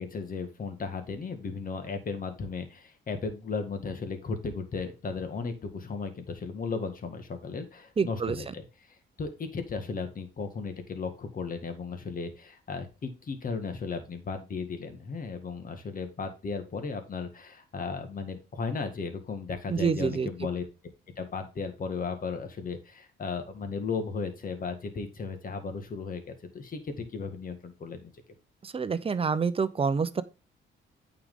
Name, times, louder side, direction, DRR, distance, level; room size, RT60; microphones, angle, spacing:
voice 1, 0.0-8.6 9.2-20.6 21.2-28.1, left 4 dB, 45° left, 1.8 m, -35 dB
voice 2, 8.0-8.4 19.7-20.3 28.6-30.2, right 5 dB, 30° right, 0.7 m, -27 dB
8.7 x 4.9 x 3.7 m
cardioid pair, 90°, 20 cm